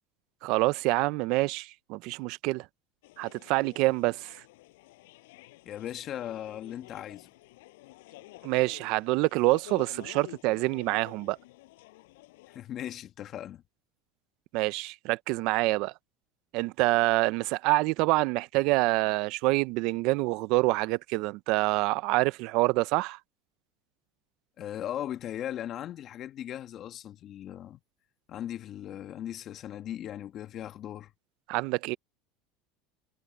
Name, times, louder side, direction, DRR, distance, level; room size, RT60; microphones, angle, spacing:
voice 1, 0.4-2.7 3.2-4.4 8.4-11.4 14.5-15.9 16.5-23.2 31.5-32.0, right 22 dB, 65° right, 0.6 m, -26 dB
sound 1, 3.0-12.6, left 20 dB, 80° left, 7.8 m, -51 dB
voice 2, 5.6-7.3 12.5-13.6 24.6-27.8 28.3-31.1, left 11 dB, 45° left, 1.5 m, -38 dB
supercardioid pair, 115°, 0 cm